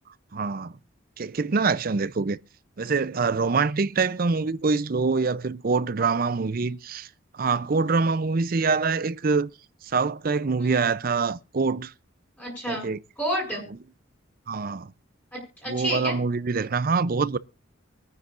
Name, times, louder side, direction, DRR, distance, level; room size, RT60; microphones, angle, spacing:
voice 1, 0.3-0.7 1.2-2.4 2.8-7.1 7.3-9.5 9.8-11.9 12.7-13.0 14.5-14.9 15.7-17.4, right 4 dB, 45° right, 0.5 m, -25 dB
voice 2, 12.4-12.9 13.2-13.6 15.3-16.2, equal, 10° left, 7.2 m, -30 dB
25.0 x 9.7 x 2.5 m
head